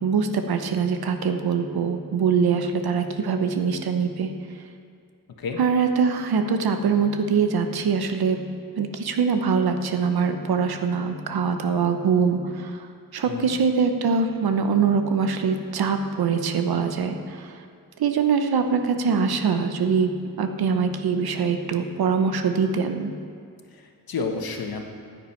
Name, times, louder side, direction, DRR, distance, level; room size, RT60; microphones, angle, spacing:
voice 1, 0.0-4.3 5.6-8.4 8.8-17.5 18.0-20.1 20.4-23.1, right 5 dB, 90° right, 7 dB, 0.9 m, -23 dB
voice 2, 13.2-13.6 23.7-24.8, left 4 dB, 75° left, 3 dB, 1.3 m, -31 dB
15.0 x 9.3 x 4.5 m, 2.3 s
wide cardioid pair, 150°, 36 cm